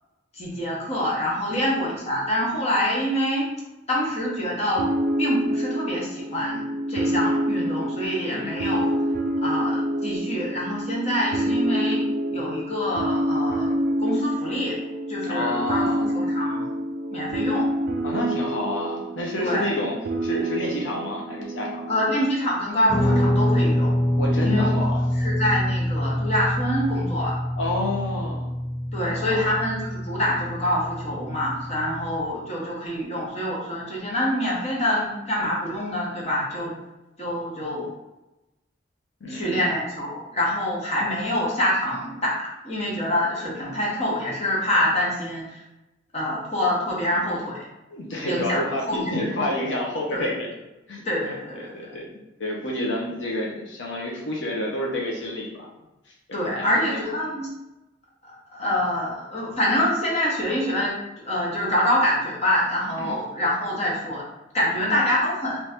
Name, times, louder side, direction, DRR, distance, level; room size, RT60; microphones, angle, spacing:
voice 1, 0.3-3.5 3.9-4.8 5.2-6.6 6.9-8.9 9.4-12.0 12.3-13.7 14.0-14.7 15.1-16.8 17.1-17.7 19.4-19.6 21.9-23.9 24.4-27.4 28.9-36.8 37.2-37.9 39.3-45.6 46.1-47.6 48.2-49.3 50.1-50.3 51.0-51.9 56.3-57.5 58.2-64.3 64.5-65.6, left 1 dB, 35° left, -5 dB, 1.0 m, -26 dB
sound 1, 4.8-22.2, right 1 dB, 55° right, 0.4 m, -27 dB
voice 2, 8.2-8.6 15.2-16.0 18.0-19.9 20.2-21.8 24.2-25.0 27.6-28.5 29.0-29.4 39.2-39.6 47.9-50.5 50.9-55.7 56.1-57.0 58.6-58.7 63.0-63.2 64.8-65.0, left 1 dB, 80° left, -2 dB, 0.7 m, -29 dB
Guitar, 22.9-32.2, equal, 5° left, 0.6 m, -25 dB
3.0 x 2.7 x 3.5 m, 0.99 s
head